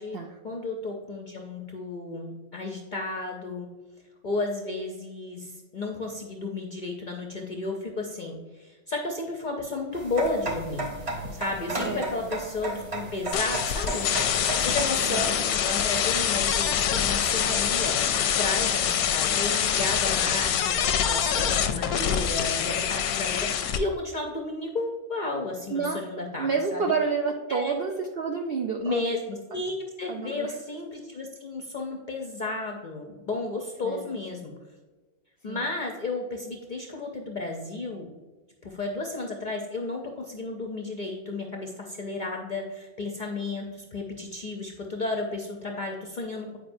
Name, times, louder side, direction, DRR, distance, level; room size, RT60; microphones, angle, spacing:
voice 1, 0.0-3.7 4.2-10.9 11.3-26.9 27.5-27.7 28.8-34.5 35.4-38.1 38.6-46.6, left 2 dB, 55° left, 1 dB, 0.5 m, -33 dB
sound 1, 9.9-14.9, right 2 dB, 30° right, 0.6 m, -34 dB
voice 2, 11.8-12.3 15.1-15.2 25.7-26.0 26.4-29.1 29.5-29.6 30.1-30.5 33.8-34.1 35.5-35.7, right 5 dB, 70° right, 3 dB, 0.5 m, -29 dB
sound 2, 13.3-23.8, left 8 dB, 90° left, 1.0 m, -25 dB
8.7 x 4.8 x 2.6 m, 1.3 s
omnidirectional pair, 1.5 m